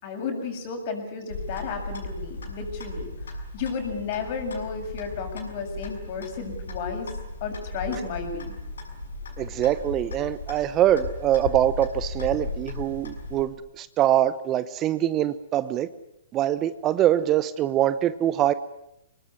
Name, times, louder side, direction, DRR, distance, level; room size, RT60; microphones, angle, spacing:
voice 1, 0.0-3.1 3.5-7.1 7.4-8.6, left 5 dB, 45° left, 4 dB, 7.5 m, -33 dB
Clock, 1.3-13.4, left 2 dB, 80° left, 6.8 m, -36 dB
voice 2, 9.4-15.9 16.3-18.5, right 12 dB, 25° right, 15 dB, 1.0 m, -23 dB
24.0 x 20.5 x 9.9 m, 0.82 s
hypercardioid pair, 130°, 0 cm